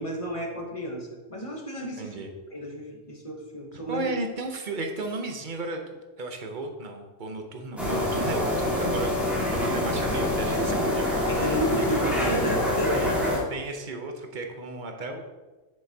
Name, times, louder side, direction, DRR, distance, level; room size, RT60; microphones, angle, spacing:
voice 1, 0.0-4.1 11.3-13.0, right 1 dB, 30° left, 0 dB, 0.9 m, -32 dB
voice 2, 2.0-2.3 3.9-9.1 9.5-12.1 12.9-13.1 13.5-15.2, right 2 dB, 45° right, 4 dB, 0.8 m, -34 dB
sound 1, 7.8-13.4, left 1 dB, ahead, 1.7 m, -26 dB
7.7 x 6.6 x 2.8 m, 1.2 s
omnidirectional pair, 1.4 m